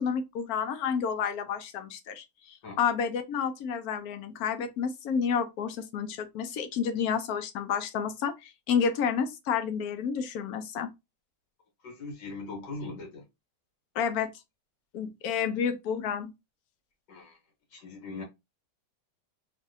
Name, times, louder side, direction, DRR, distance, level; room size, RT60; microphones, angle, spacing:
voice 1, 0.0-10.9 14.0-14.3 14.9-16.3, left 7 dB, 70° left, 1.0 m, -30 dB
voice 2, 11.8-13.3 17.1-17.4 17.7-18.2, left 3 dB, 90° left, 2.0 m, -40 dB
3.4 x 2.7 x 2.6 m
omnidirectional pair, 1.8 m